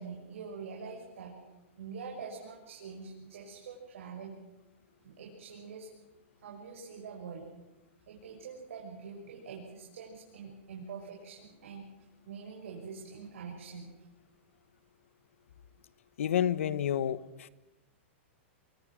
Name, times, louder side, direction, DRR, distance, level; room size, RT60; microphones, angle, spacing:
voice 1, 0.0-1.3 1.8-4.3 5.0-5.9 6.4-7.4 8.1-11.9 12.2-13.9, right 5 dB, 85° right, 6.7 m, -45 dB
voice 2, 16.2-17.5, left 10 dB, 85° left, 1.2 m, -30 dB
26.0 x 23.5 x 6.4 m
supercardioid pair, 170°, 7 cm